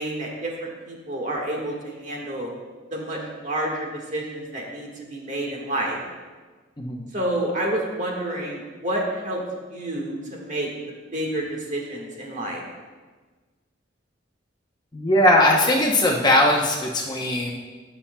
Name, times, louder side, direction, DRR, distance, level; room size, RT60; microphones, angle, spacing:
voice 1, 0.0-2.5 2.9-6.0 7.1-9.4 9.7-12.6, right 1 dB, 40° right, -1 dB, 1.5 m, -29 dB
voice 2, 14.9-17.5, left 1 dB, 25° left, -1 dB, 0.8 m, -19 dB
17.0 x 5.8 x 2.2 m, 1.4 s
head